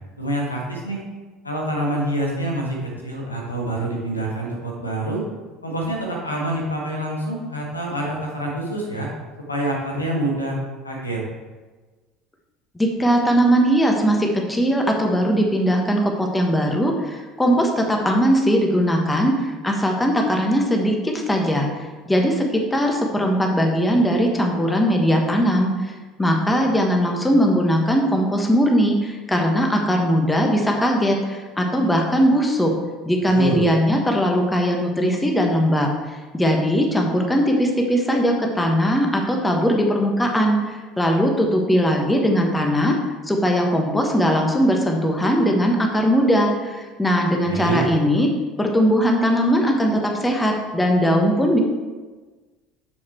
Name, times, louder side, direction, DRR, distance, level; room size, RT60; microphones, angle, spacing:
voice 1, 0.2-1.0 1.4-5.2 5.6-9.1 9.5-10.6 10.8-11.2 33.3-33.6 47.4-47.9, right 1 dB, 90° left, -1 dB, 1.4 m, -26 dB
voice 2, 12.7-25.9 26.2-32.7 33.0-35.9 36.3-43.0 43.3-48.3 48.6-51.6, equal, 10° left, 1 dB, 1.3 m, -20 dB
6.9 x 6.1 x 4.5 m, 1.3 s
figure-of-eight pair, 65°, 0 cm